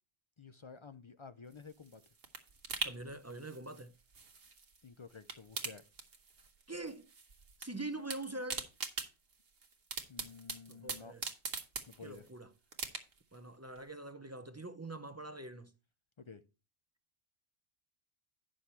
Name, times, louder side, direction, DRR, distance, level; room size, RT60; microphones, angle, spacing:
voice 1, 0.4-2.0 4.8-5.8 10.1-11.2 11.9-12.2 16.2-16.4, left 5 dB, 50° left, 0.3 m, -52 dB
sound 1, 1.5-4.8 5.1-6.6 6.9-7.7 7.9-12.3 12.7-13.4 13.8-13.9, right 4 dB, 60° right, 1.4 m, -42 dB
voice 2, 2.8-3.9 6.7-7.1 7.6-8.7 10.7-11.2 12.0-12.5 13.3-15.7, right 2 dB, 20° right, 0.5 m, -44 dB
9.7 x 6.3 x 4.4 m
omnidirectional pair, 1.1 m